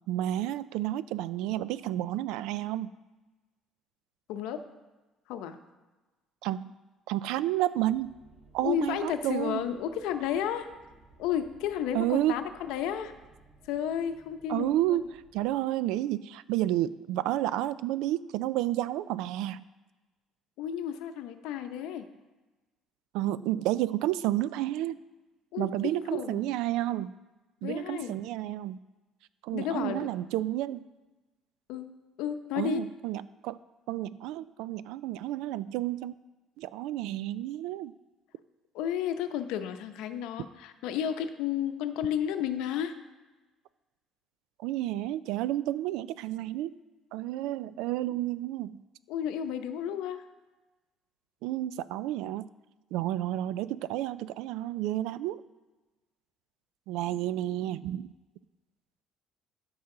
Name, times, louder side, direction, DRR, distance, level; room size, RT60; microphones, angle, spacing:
voice 1, 0.1-2.9 6.4-6.7 7.1-8.1 8.5-9.6 11.9-12.3 14.5-19.6 23.1-25.0 25.6-27.1 27.6-28.8 29.4-30.8 32.5-33.6 33.9-36.1 36.6-37.9 44.6-46.8 47.1-48.8 51.4-52.5 52.9-55.4 56.9-58.1, right 14 dB, 90° right, 17 dB, 0.3 m, -31 dB
voice 2, 4.3-4.6 5.3-5.6 8.6-10.7 11.2-13.1 13.7-15.0 20.6-22.1 25.5-26.5 27.6-28.1 29.5-30.1 31.7-31.9 32.2-32.8 38.7-42.9 49.1-50.2, left 9 dB, 90° left, 8 dB, 0.7 m, -32 dB
sound 1, 7.8-15.6, right 3 dB, 40° right, 1.8 m, -59 dB
13.0 x 5.7 x 3.8 m, 1.2 s
cardioid pair, 150°, 0 cm